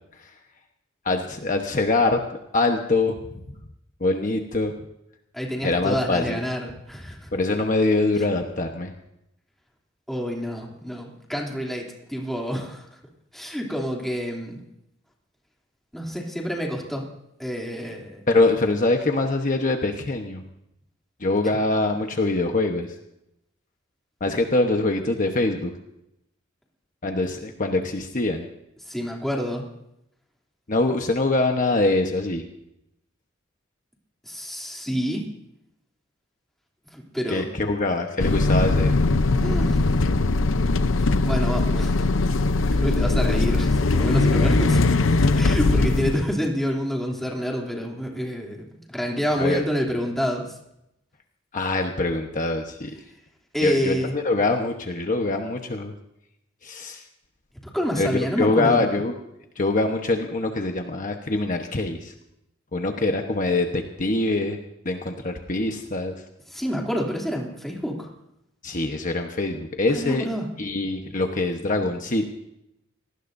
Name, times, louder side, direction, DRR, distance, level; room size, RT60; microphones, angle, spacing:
voice 1, 1.0-2.2 2.5-3.4 4.0-4.7 5.6-6.4 7.3-8.9 18.3-20.4 21.2-22.9 24.2-25.7 27.0-28.5 30.7-32.4 37.3-38.9 49.4-49.6 51.5-53.0 53.6-55.9 56.6-57.0 58.0-59.2 59.6-62.1 62.7-64.6 64.8-66.1 68.6-70.3 70.6-72.2, left 2 dB, 40° left, 4 dB, 1.1 m, -24 dB
voice 2, 5.3-7.3 10.1-12.9 13.3-14.6 15.9-17.1 17.4-18.2 28.9-29.6 34.3-35.3 36.9-37.5 39.4-39.9 41.0-42.0 42.7-50.4 53.5-54.1 57.7-58.8 66.5-68.1 69.9-70.5, equal, ahead, -2 dB, 3.0 m, -28 dB
sound 1, 38.2-46.2, left 3 dB, 85° left, 0.7 m, -20 dB
26.5 x 19.0 x 2.7 m, 0.82 s
head